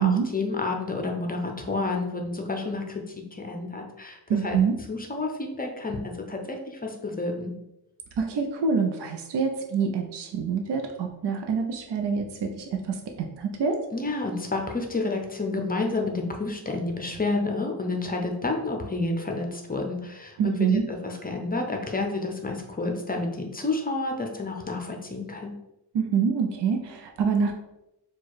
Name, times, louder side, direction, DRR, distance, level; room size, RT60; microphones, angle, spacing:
voice 1, 0.0-3.0 3.3-4.6 4.9-7.5 13.9-25.5, left 3 dB, 20° left, 2 dB, 0.5 m, -30 dB
voice 2, 4.3-4.8 8.2-13.8 20.4-20.9 25.9-27.5, right 6 dB, 70° right, 4 dB, 0.6 m, -26 dB
4.4 x 2.3 x 4.6 m, 0.89 s
wide cardioid pair, 160°, 43 cm